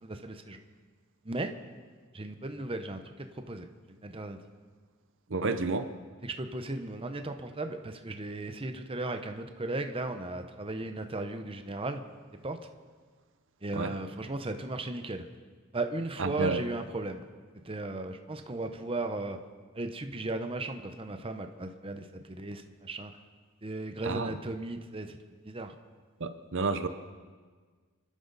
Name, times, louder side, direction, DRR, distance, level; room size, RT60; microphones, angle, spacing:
voice 1, 0.0-0.6 1.2-1.5 2.1-4.4 6.2-12.0 12.4-12.6 13.6-15.3 15.7-17.2 17.6-19.4 19.7-23.1 23.6-25.2 25.4-25.7, right 2 dB, 25° right, 6 dB, 0.8 m, -36 dB
voice 2, 5.3-5.9 13.7-14.0 16.2-16.6 24.0-24.4 26.2-26.9, right 3 dB, 60° right, 10 dB, 0.8 m, -30 dB
26.5 x 12.0 x 4.1 m, 1.5 s
head